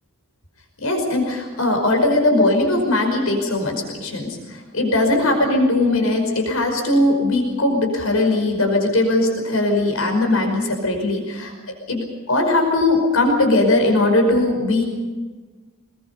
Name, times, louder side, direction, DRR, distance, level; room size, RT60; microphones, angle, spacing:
voice 1, 0.8-11.5 11.9-14.8, left 2 dB, 85° left, 3 dB, 5.2 m, -19 dB
26.0 x 21.0 x 5.5 m, 1.4 s
head